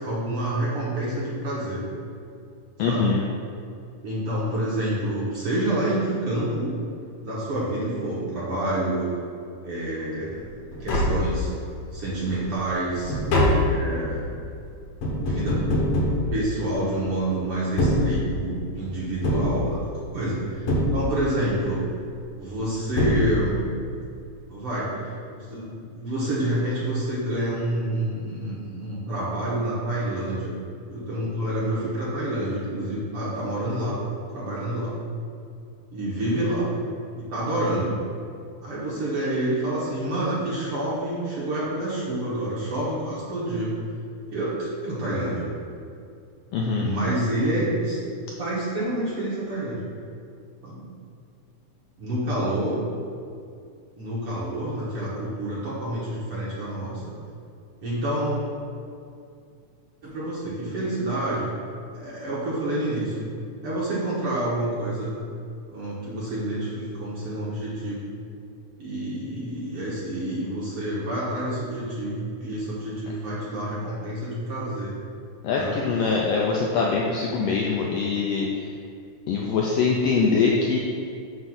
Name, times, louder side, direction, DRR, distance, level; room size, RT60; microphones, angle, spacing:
voice 1, 0.0-1.8 2.9-3.1 4.0-6.7 7.2-9.1 9.6-11.5 11.9-13.1 13.6-14.3 15.0-15.6 16.3-19.8 20.1-21.8 22.4-23.6 24.5-34.0 34.3-35.0 35.9-36.7 37.1-37.9 38.6-43.8 44.3-45.5 46.8-48.0 48.4-49.8 50.6-50.8 52.0-52.8 54.0-57.1 57.8-58.4 60.0-61.5 61.9-63.2 63.6-65.1 65.7-68.1 68.8-74.9 75.5-75.8, right 1 dB, 60° right, -8 dB, 1.7 m, -28 dB
voice 2, 2.8-3.2 46.5-46.9 75.4-78.5 79.3-80.8, left 4 dB, 85° left, -2 dB, 1.4 m, -23 dB
Tap, 10.4-10.5 10.7-11.8 12.3-17.0 17.6-18.7 19.2-20.2 20.7-21.5 22.5-22.6 23.0-23.8 24.1-24.2, left 1 dB, 65° left, 1.6 m, -24 dB
7.7 x 2.6 x 5.9 m, 2.4 s
omnidirectional pair, 3.4 m